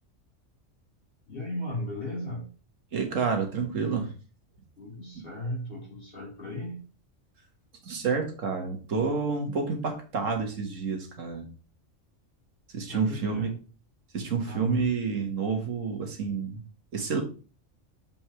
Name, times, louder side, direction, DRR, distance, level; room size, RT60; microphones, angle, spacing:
voice 1, 1.3-2.5 4.8-6.8 12.9-13.5 14.4-14.9, left 1 dB, 45° left, -5 dB, 4.2 m, -35 dB
voice 2, 2.9-4.1 7.8-11.5 12.7-13.5 14.1-16.6 16.9-17.2, right 5 dB, 80° right, 4 dB, 1.8 m, -29 dB
7.2 x 5.4 x 3.1 m, 0.34 s
omnidirectional pair, 1.3 m